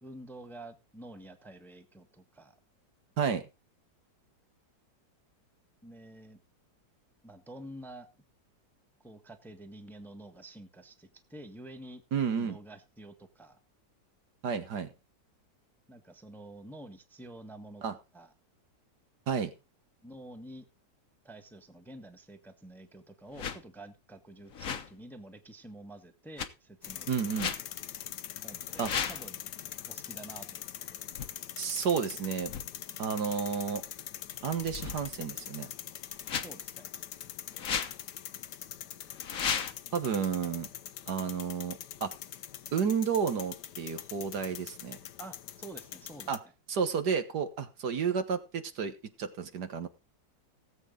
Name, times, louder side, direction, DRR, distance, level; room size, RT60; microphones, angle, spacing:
voice 1, 0.0-2.5 5.8-6.4 7.2-8.1 9.0-12.0 12.3-13.6 15.9-17.8 18.1-18.3 20.0-20.7 21.2-27.4 28.4-29.4 29.9-30.9 36.4-36.9 45.2-46.4, right 1 dB, ahead, 8 dB, 1.2 m, -49 dB
voice 2, 12.1-12.6 14.4-14.9 17.8-17.9 19.3-19.5 27.1-27.5 28.8-28.9 31.6-32.5 33.0-33.8 34.4-35.7 39.9-40.7 41.1-42.1 42.7-45.0 46.3-46.4 46.7-49.9, right 6 dB, 65° right, 10 dB, 1.8 m, -31 dB
sound 1, 23.3-23.6 24.5-24.9 26.4-26.5 27.3-27.6 28.7-29.3 31.1-31.3 32.4-32.7 34.5-35.3 36.2-36.5 37.5-38.0 39.1-39.7, left 7 dB, 50° left, 1.4 m, -34 dB
sound 2, 26.8-46.4, left 11 dB, 70° left, 1.4 m, -43 dB
18.0 x 8.2 x 3.7 m, 0.28 s
omnidirectional pair, 1.9 m